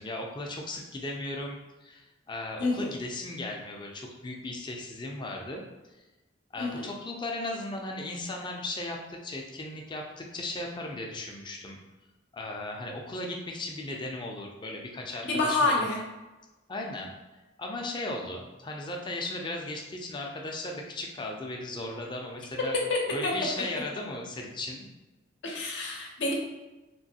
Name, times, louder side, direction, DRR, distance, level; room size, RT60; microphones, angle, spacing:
voice 1, 0.0-5.6 6.5-11.8 12.3-15.8 16.7-17.1 17.6-22.8 23.1-24.9, left 2 dB, 25° left, 1 dB, 0.4 m, -36 dB
voice 2, 15.2-16.0 22.9-23.3 25.4-26.3, left 2 dB, 70° left, -1 dB, 0.7 m, -27 dB
3.0 x 2.6 x 2.8 m, 1.1 s
head